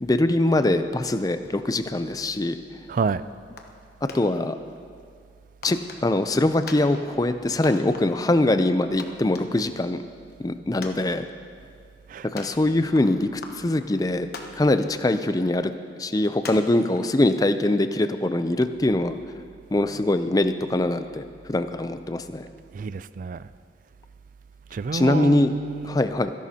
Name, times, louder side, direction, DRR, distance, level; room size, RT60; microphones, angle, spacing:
voice 1, 0.0-2.6 4.0-4.6 5.6-10.0 10.4-11.3 12.3-14.3 14.6-15.7 16.0-19.2 19.7-22.5 24.9-25.5 25.8-26.3, left 1 dB, 20° left, 0.4 m, -23 dB
voice 2, 2.9-3.2 12.1-12.3 22.7-23.5 24.7-26.0, right 5 dB, 45° right, 0.3 m, -29 dB
sound 1, 3.6-3.8 4.1-4.8 5.6-6.3 6.7-7.4 7.6-8.4 8.7-8.8 9.0-10.0 10.3-10.4 10.8-11.6 12.4-13.1 13.4-14.0 14.3-15.0 15.4-15.5 16.4-17.7, left 3 dB, 60° left, 1.1 m, -40 dB
27.0 x 11.0 x 2.9 m
head